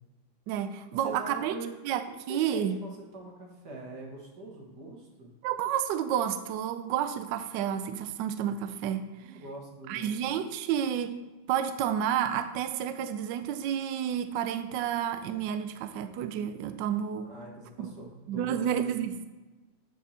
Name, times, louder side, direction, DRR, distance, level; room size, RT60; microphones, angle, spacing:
voice 1, 0.5-1.5 1.8-2.0 2.3-2.8 5.4-9.1 9.9-11.1 11.5-17.3 17.8-17.9 18.3-19.3, right 9 dB, 75° right, 10 dB, 1.1 m, -30 dB
voice 2, 1.0-1.7 2.3-5.3 9.2-10.2 17.2-18.7, right 2 dB, 55° right, -1 dB, 1.9 m, -43 dB
9.1 x 4.4 x 4.2 m, 1.2 s
omnidirectional pair, 2.3 m